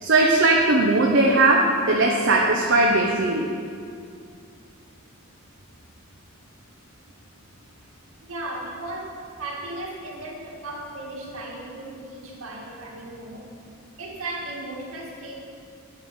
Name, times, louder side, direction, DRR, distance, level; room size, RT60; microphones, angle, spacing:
voice 1, 0.0-3.5, right 2 dB, 60° right, -1 dB, 0.8 m, -19 dB
voice 2, 8.2-13.5 14.0-15.3, right 2 dB, 85° right, -3 dB, 2.2 m, -36 dB
9.6 x 5.9 x 7.0 m, 2.3 s
head